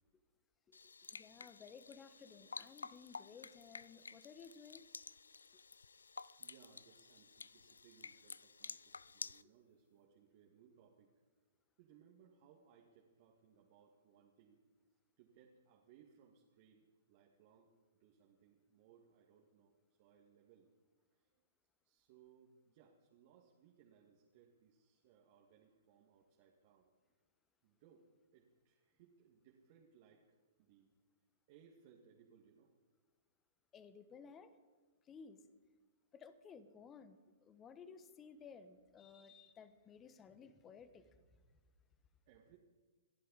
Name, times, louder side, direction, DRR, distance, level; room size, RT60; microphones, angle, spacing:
sound 1, 0.7-9.4, left 4 dB, 75° left, 0.4 m, -52 dB
voice 1, 1.1-4.9 33.7-34.5 35.1-35.4 36.1-41.0, left 6 dB, 20° left, 13 dB, 1.2 m, -57 dB
voice 2, 6.2-11.1 11.8-14.6 15.2-17.7 18.0-19.7 20.0-20.7 21.1-21.4 21.8-26.9 27.6-31.0 31.5-32.7 42.3-42.6, right 7 dB, 45° right, -1 dB, 2.1 m, -67 dB
29.5 x 11.0 x 4.1 m, 1.5 s
figure-of-eight pair, 120°, 0 cm